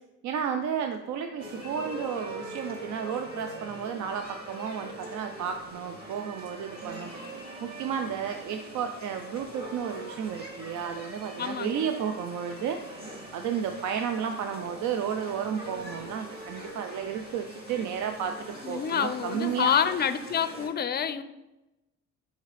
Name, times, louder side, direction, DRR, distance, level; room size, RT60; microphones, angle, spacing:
voice 1, 0.2-13.0 13.3-19.7, right 7 dB, 75° right, 6 dB, 0.5 m, -32 dB
sound 1, 1.4-20.7, right 1 dB, 30° right, 2.0 m, -42 dB
voice 2, 11.4-11.8 18.6-21.2, left 8 dB, 35° left, 13 dB, 0.4 m, -27 dB
6.4 x 5.0 x 3.3 m, 0.98 s
cardioid pair, 90°, 30 cm